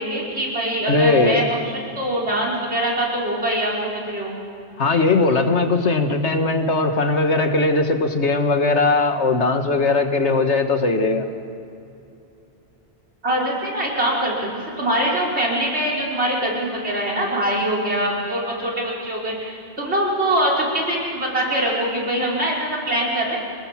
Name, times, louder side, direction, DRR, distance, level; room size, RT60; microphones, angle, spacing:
voice 1, 0.0-1.6 2.0-4.4 13.2-23.4, right 1 dB, 70° right, -2 dB, 5.1 m, -23 dB
voice 2, 0.9-1.4 4.8-11.3, left 3 dB, 80° left, 6 dB, 2.0 m, -19 dB
26.5 x 20.5 x 7.4 m, 2.6 s
omnidirectional pair, 1.1 m